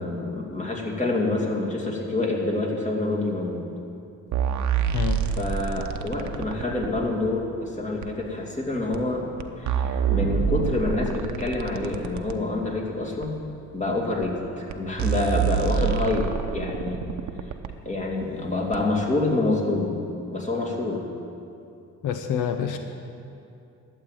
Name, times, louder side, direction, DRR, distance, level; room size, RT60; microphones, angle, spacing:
voice 1, 0.0-3.6 5.4-9.2 9.6-13.4 13.7-17.1 17.8-20.0 20.3-21.1, left 2 dB, 25° left, -1 dB, 2.6 m, -27 dB
sound 1, 4.3-7.0 8.0-8.1 8.9-9.0 9.4-12.4 13.2-13.3 14.2-14.3 14.7-14.8 15.0-17.7 18.7-18.8, right 7 dB, 70° right, 0.8 m, -27 dB
voice 2, 4.9-5.3 22.0-22.8, left 8 dB, 85° left, 7 dB, 0.8 m, -27 dB
12.0 x 8.2 x 9.0 m, 2.6 s
cardioid pair, 90°, 30 cm